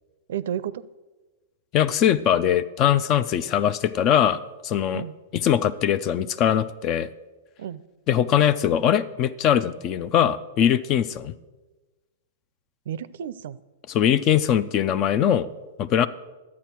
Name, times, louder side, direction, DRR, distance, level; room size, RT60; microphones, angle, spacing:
voice 1, 0.3-0.9 4.9-5.2 7.6-7.8 12.9-13.6, right 10 dB, 70° right, 17 dB, 0.4 m, -32 dB
voice 2, 1.7-5.0 5.3-7.1 8.1-11.3 13.9-15.5 15.8-16.1, left 9 dB, 35° left, 16 dB, 0.4 m, -21 dB
11.0 x 8.4 x 4.5 m, 1.2 s
hypercardioid pair, 125°, 0 cm